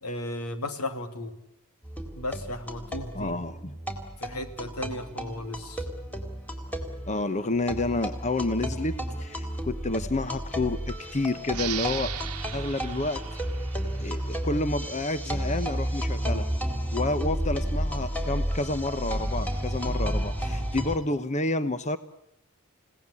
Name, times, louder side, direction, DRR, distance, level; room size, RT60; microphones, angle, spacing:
voice 1, 0.0-1.3 2.1-3.4 4.2-5.9, left 1 dB, 85° left, 8 dB, 3.0 m, -35 dB
sound 1, 1.8-21.0, equal, 5° left, 3.9 m, -32 dB
voice 2, 3.1-3.8 7.1-12.1 12.5-13.2 14.0-16.5 16.9-22.0, left 2 dB, 35° left, 12 dB, 1.0 m, -29 dB
sound 2, 11.5-14.8, right 13 dB, 85° right, 1.0 m, -38 dB
29.0 x 18.0 x 9.9 m, 0.78 s
head